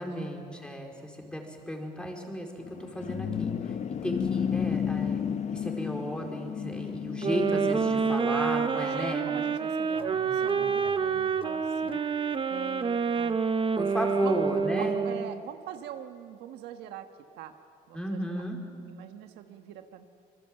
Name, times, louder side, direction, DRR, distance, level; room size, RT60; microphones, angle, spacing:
voice 1, 0.0-3.8 4.0-5.2 5.5-9.3 13.8-15.0 17.9-18.6, equal, 5° left, 1 dB, 4.4 m, -34 dB
sound 1, 2.6-8.2, left 7 dB, 40° left, 0.9 m, -32 dB
sound 2, 7.2-15.4, right 5 dB, 30° right, 1.0 m, -28 dB
voice 2, 8.7-12.0 12.5-13.4 14.1-17.1 17.4-17.5 17.9-18.4 18.9-20.0, right 10 dB, 85° right, 7 dB, 1.5 m, -43 dB
sound 3, 9.9-12.4, left 4 dB, 80° left, 3.0 m, -50 dB
26.0 x 22.0 x 7.9 m, 2.5 s
cardioid pair, 110°, 17 cm